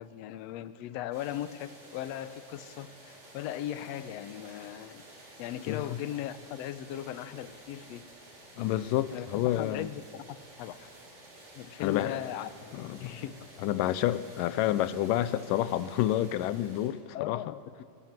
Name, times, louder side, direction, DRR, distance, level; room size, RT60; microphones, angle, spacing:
voice 1, 0.0-5.0 5.4-8.0 9.1-10.9 11.5-13.4 17.1-17.8, left 12 dB, 70° left, 1.7 m, -38 dB
sound 1, 1.1-16.9, right 1 dB, 70° right, 6.5 m, -52 dB
voice 2, 5.7-6.0 8.6-9.9 11.8-12.2 12.7-13.1 13.6-17.4, left 13 dB, 90° left, 2.4 m, -29 dB
24.5 x 19.0 x 7.4 m
omnidirectional pair, 3.8 m